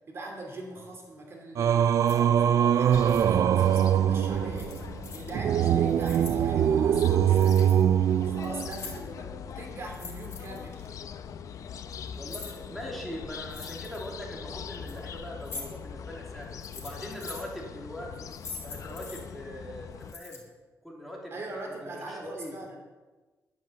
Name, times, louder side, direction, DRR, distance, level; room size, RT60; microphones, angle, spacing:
voice 1, 0.1-7.9 8.2-10.8 21.3-22.7, right 2 dB, 45° right, 1 dB, 2.6 m, -42 dB
Singing, 1.6-8.9, right 9 dB, 60° right, 0.4 m, -23 dB
sound 1, 2.0-2.2 2.8-3.2 4.5-5.3 5.8-6.4 7.0-7.8 8.2-9.2 9.8-10.9 11.7-12.5 13.4-14.1 14.7-15.0 15.4-15.6 16.4-17.5 18.1-19.2 20.0-20.4, left 4 dB, 45° left, 3.3 m, -43 dB
sound 2, 2.9-20.1, left 7 dB, 65° left, 0.7 m, -42 dB
voice 2, 12.1-16.5 16.7-18.1 18.6-20.4 20.8-22.6, equal, ahead, -3 dB, 3.1 m, -41 dB
11.0 x 11.0 x 7.4 m, 1.2 s
wide cardioid pair, 165°, 6 cm